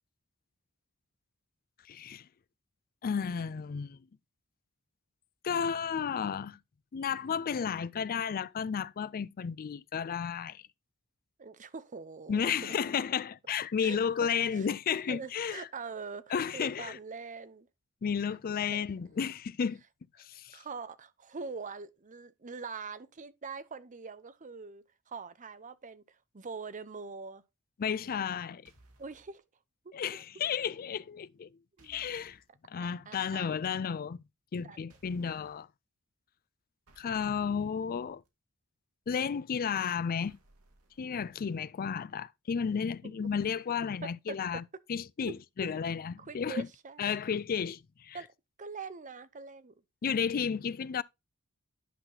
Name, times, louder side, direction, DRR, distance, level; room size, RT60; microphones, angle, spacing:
voice 1, 1.9-2.3 3.0-4.0 5.4-6.6 6.9-10.6 12.3-15.7 16.3-17.0 18.0-19.8 20.2-20.6 27.8-28.7 29.9-31.5 31.8-32.4 32.7-34.2 34.5-35.7 37.0-38.2 39.1-40.4 41.0-44.6 44.9-46.7 47.0-48.2 50.0-51.0, left 7 dB, 40° left, 0.4 m, -33 dB
voice 2, 11.4-12.5 13.8-14.7 15.1-17.7 18.3-18.4 18.7-18.9 20.5-27.4 29.0-29.4 31.8-32.0 32.8-33.5 34.6-34.8 43.0-43.3 44.0-44.6 45.3-45.4 46.2-47.1 48.1-48.3 48.6-49.7, right 4 dB, 35° right, 0.7 m, -43 dB
sound 1, 28.7-29.4 31.8-32.5 34.9-35.6 36.9-38.3 40.2-41.6, right 2 dB, 90° right, 2.0 m, -63 dB
10.5 x 5.8 x 2.8 m
head